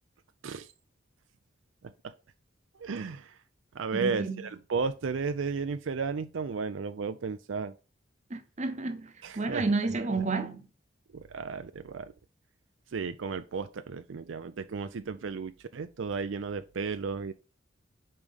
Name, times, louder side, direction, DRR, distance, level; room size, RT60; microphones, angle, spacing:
voice 1, 2.8-3.3 3.7-7.7 9.2-9.6 11.1-12.1 12.9-17.3, right 5 dB, 80° right, 0.5 m, -34 dB
voice 2, 3.9-4.4 8.3-10.6, right 3 dB, 40° right, 0.8 m, -31 dB
5.4 x 4.8 x 5.3 m
head